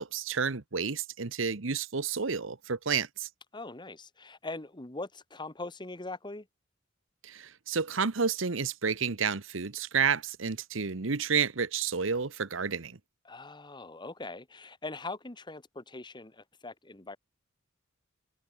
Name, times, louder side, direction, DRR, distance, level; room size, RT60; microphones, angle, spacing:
voice 1, 0.0-3.3 7.2-13.0, right 6 dB, 75° right, 1.1 m, -30 dB
voice 2, 3.5-6.5 13.2-17.2, left 2 dB, 25° left, 1.4 m, -41 dB
head